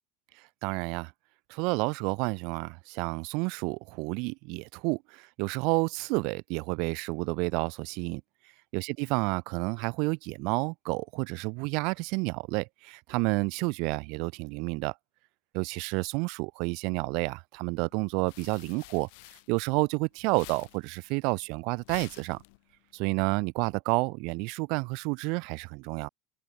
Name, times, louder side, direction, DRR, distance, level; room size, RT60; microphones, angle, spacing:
voice 1, 0.6-1.1 1.5-8.2 8.7-14.9 15.5-19.1 19.5-22.4 22.9-26.1, right 30 dB, 60° right, 0.7 m, -30 dB
sound 1, 17.9-20.0 20.2-22.9, left 31 dB, 70° left, 3.6 m, -50 dB
open air
supercardioid pair, 155°, 0 cm